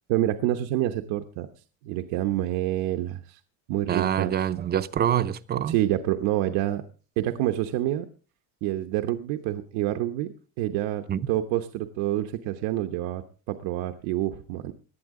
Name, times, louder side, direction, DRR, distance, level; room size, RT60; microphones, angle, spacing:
voice 1, 0.1-1.5 1.8-3.4 3.7-4.3 5.7-6.8 7.2-8.0 8.6-14.7, right 14 dB, 80° right, 1.0 m, -27 dB
voice 2, 3.9-5.8 11.1-11.2, right 10 dB, 25° right, 0.5 m, -25 dB
18.0 x 11.5 x 3.7 m
cardioid pair, 155°, 37 cm